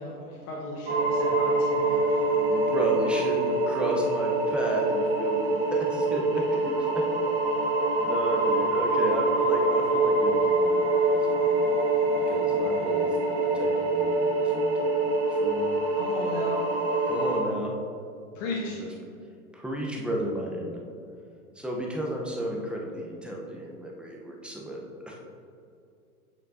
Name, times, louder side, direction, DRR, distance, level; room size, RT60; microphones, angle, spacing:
voice 1, 0.0-2.2 16.0-16.6 18.3-18.8, left 2 dB, 55° left, -4 dB, 1.3 m, -36 dB
sound 1, 0.9-17.4, right 2 dB, 50° right, 1.7 m, -25 dB
voice 2, 2.4-7.0 8.0-11.9 12.2-15.7 17.1-17.7 18.8-18.9 19.5-20.8 21.6-25.2, right 1 dB, ahead, -2 dB, 0.7 m, -33 dB
8.2 x 6.6 x 2.6 m, 2.4 s
hypercardioid pair, 110°, 46 cm